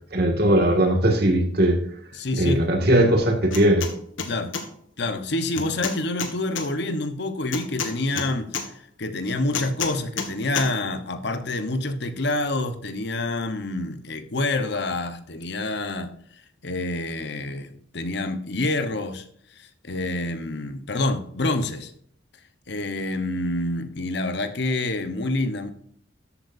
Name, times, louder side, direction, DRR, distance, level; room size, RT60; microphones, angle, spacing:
voice 1, 0.1-1.8 2.3-3.9, right 1 dB, 55° right, 3 dB, 2.1 m, -19 dB
voice 2, 2.1-2.7 4.3-4.5 5.0-8.6 9.0-16.1 16.6-19.2 19.6-21.9 22.7-25.7, left 2 dB, 60° left, 10 dB, 1.1 m, -27 dB
sound 1, 3.5-3.9 4.2-4.6 5.6-6.7 7.5-8.7 9.5-10.3 10.6-10.7, left 5 dB, 85° left, 1.7 m, -29 dB
13.0 x 8.2 x 2.7 m, 0.66 s
head